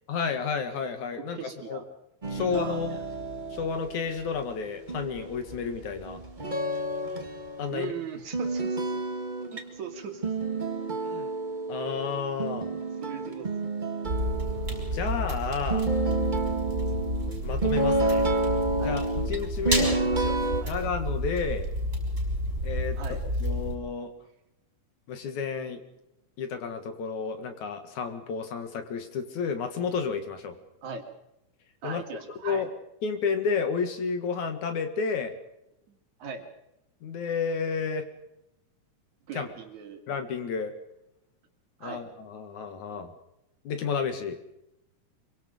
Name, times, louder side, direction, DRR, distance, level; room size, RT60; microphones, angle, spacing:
voice 1, 0.1-1.8 2.3-3.0 3.5-6.2 7.6-7.9 11.1-11.3 11.7-12.7 14.7-15.9 17.4-18.3 18.8-20.0 20.7-21.7 22.6-24.1 25.1-25.8 26.4-30.6 31.8-32.0 32.4-32.7 33.0-35.4 37.0-38.1 39.3-39.5 40.1-40.7 41.8-43.1 43.6-44.4, left 5 dB, 70° left, 8 dB, 3.1 m, -31 dB
voice 2, 1.1-1.8 2.4-2.9 7.7-8.9 9.5-10.3 12.7-13.5 18.8-19.0 19.8-20.7 22.9-23.2 30.8-31.0 31.8-32.7 35.9-36.4 39.3-40.0 41.8-42.0, right 6 dB, 65° right, 5 dB, 3.4 m, -40 dB
sound 1, 2.2-4.6 4.9-7.9 8.3-15.4 15.7-20.6, right 2 dB, 40° right, 0.6 m, -30 dB
sound 2, 14.0-23.7, equal, 20° right, 6.7 m, -30 dB
26.0 x 24.0 x 5.3 m, 0.85 s
omnidirectional pair, 3.6 m